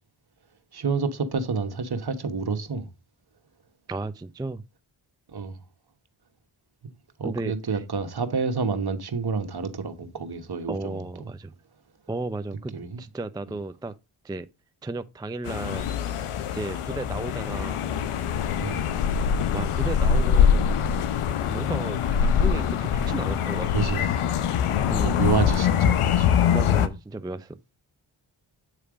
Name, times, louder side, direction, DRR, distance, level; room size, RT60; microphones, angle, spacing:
voice 1, 0.7-2.9 5.3-5.6 6.8-6.9 7.2-11.3 12.7-13.0 18.6-19.0 23.7-24.1 25.0-26.3, right 5 dB, 50° right, 1.3 m, -29 dB
voice 2, 3.9-4.6 7.2-7.8 10.7-11.5 12.1-13.9 14.2-14.5 14.8-15.9 16.5-17.8 19.5-20.6 21.5-23.8 24.9-25.2 26.5-27.6, right 2 dB, 10° right, 0.4 m, -34 dB
sound 1, 15.5-26.9, left 8 dB, 85° left, 0.8 m, -23 dB
8.6 x 3.3 x 4.9 m
cardioid pair, 40°, 50 cm